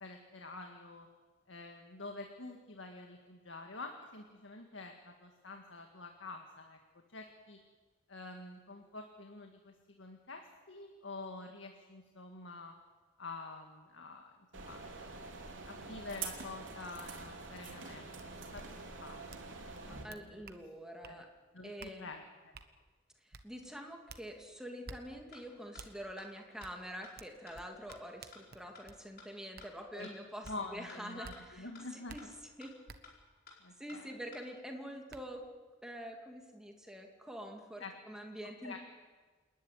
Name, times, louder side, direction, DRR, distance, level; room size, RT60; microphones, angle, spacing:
voice 1, 0.0-1.1 1.5-6.8 7.1-7.6 8.1-12.7 13.2-14.8 15.7-18.1 18.4-19.4 19.9-20.3 21.0-21.2 21.5-22.5 30.0-30.1 30.5-32.3 33.6-34.1 37.8-37.9 38.6-38.8, left 3 dB, 90° left, 3 dB, 1.9 m, -47 dB
sound 1, 14.5-20.0, right 4 dB, 90° right, 3.3 m, -46 dB
sound 2, 18.2-18.3 18.5-18.6 19.3-19.5 19.7-20.6 21.0-21.2 21.8-21.9 22.5-22.7 23.3-23.4 24.1-24.2 24.8-25.0 25.8-25.9 26.6-26.7 27.2-29.0 29.6-29.7 30.4-30.6 31.2-31.4 32.1-32.2 32.9-33.0 34.5-34.6 35.1-35.2, right 4 dB, 55° right, 1.3 m, -50 dB
voice 2, 20.0-21.3 21.6-22.1 23.2-31.7 31.9-32.2 32.6-32.8 33.8-35.4 35.8-38.8, equal, 5° right, 2 dB, 2.6 m, -46 dB
sound 3, 25.3-25.4 25.7-25.8 26.2-26.3 26.6-26.7 27.0-27.1 27.5-27.6 27.9-28.0 28.3-28.4 28.7-28.8 29.2-29.3 29.6-29.7 30.0-30.1 30.5-30.6 30.9-31.0 31.3-31.4 31.7-31.8 32.2-32.3 32.6-32.7 33.0-33.1 33.5-33.6 33.9-34.0 34.3-34.4, left 4 dB, 55° left, 5.3 m, -53 dB
28.0 x 11.5 x 9.8 m, 1.4 s
head